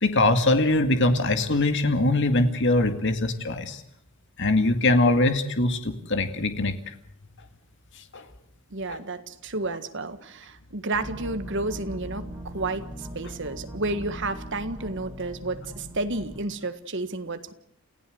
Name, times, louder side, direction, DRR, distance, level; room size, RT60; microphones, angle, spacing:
voice 1, 0.0-3.8 4.4-6.7 8.1-8.2 8.9-9.0, left 2 dB, 55° left, 8 dB, 2.2 m, -22 dB
voice 2, 8.7-17.5, right 2 dB, 55° right, 10 dB, 1.7 m, -31 dB
sound 1, 10.9-16.4, right 1 dB, 10° right, 4.5 m, -40 dB
28.5 x 16.0 x 7.9 m, 0.70 s
head